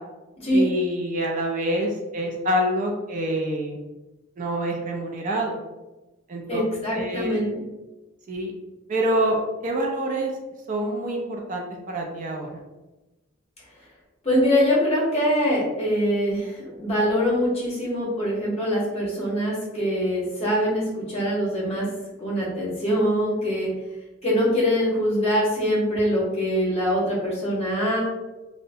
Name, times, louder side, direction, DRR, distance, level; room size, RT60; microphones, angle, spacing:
voice 1, 0.5-3.8 4.4-5.6 6.3-6.6 6.9-7.4 8.3-8.5 8.9-9.4 9.6-10.3 10.7-12.6, right 1 dB, 40° right, 1 dB, 0.4 m, -26 dB
voice 2, 6.5-7.6 14.2-21.9 22.2-23.7 24.2-28.0, equal, 30° left, -5 dB, 1.0 m, -23 dB
2.7 x 2.1 x 2.6 m, 1.1 s
head